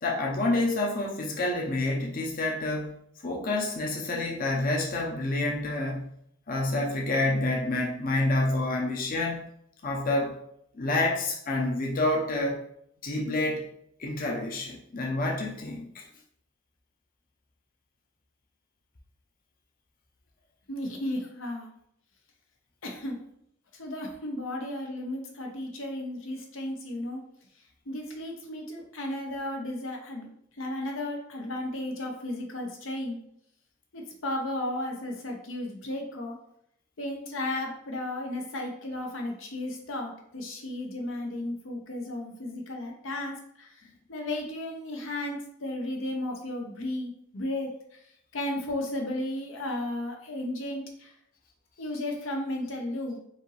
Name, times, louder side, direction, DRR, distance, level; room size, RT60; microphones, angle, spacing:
voice 1, 0.0-2.9 3.2-6.0 6.5-9.4 9.8-10.4 10.7-12.6 13.0-13.6 14.0-16.0, left 2 dB, 45° left, -1 dB, 0.7 m, -28 dB
voice 2, 20.7-21.7 22.8-23.2 23.7-27.2 27.9-30.3 30.5-33.2 33.9-36.4 37.0-48.0 48.3-51.1 51.8-53.2, left 1 dB, 85° left, 1 dB, 0.9 m, -34 dB
5.0 x 2.6 x 3.3 m, 0.72 s
head